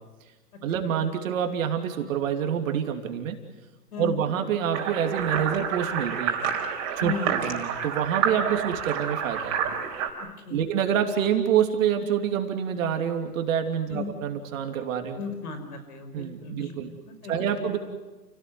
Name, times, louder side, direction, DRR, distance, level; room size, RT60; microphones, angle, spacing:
voice 1, 0.6-3.4 4.0-6.4 7.0-9.6 10.5-15.2 16.1-16.9 17.3-17.8, right 8 dB, 55° right, 5 dB, 3.0 m, -27 dB
voice 2, 3.9-4.3 7.0-7.3 10.4-10.7 13.9-14.1 15.2-17.7, left 5 dB, 65° left, 8 dB, 6.0 m, -36 dB
sound 1, 4.7-10.1, right 7 dB, 35° right, 4.6 m, -29 dB
29.5 x 18.0 x 9.6 m, 1.2 s
hypercardioid pair, 135°, 48 cm